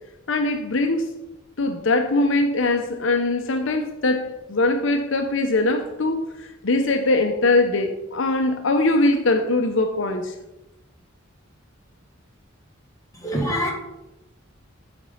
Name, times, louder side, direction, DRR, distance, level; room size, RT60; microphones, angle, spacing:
voice 1, 0.3-1.1 1.6-10.3, left 2 dB, 65° left, 5 dB, 0.7 m, -22 dB
voice 2, 13.2-13.7, equal, 15° left, -1 dB, 1.7 m, -24 dB
8.0 x 5.2 x 5.6 m, 0.94 s
head